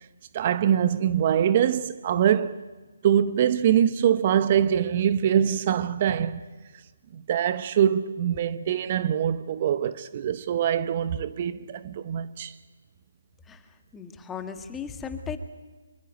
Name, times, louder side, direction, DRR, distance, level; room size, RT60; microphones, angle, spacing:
voice 1, 0.3-2.6 3.0-6.4 7.1-12.6, right 9 dB, 35° right, 0.9 m, -23 dB
voice 2, 13.5-15.4, left 6 dB, 10° left, 2.0 m, -37 dB
25.5 x 24.5 x 9.2 m
figure-of-eight pair, 155°, 0 cm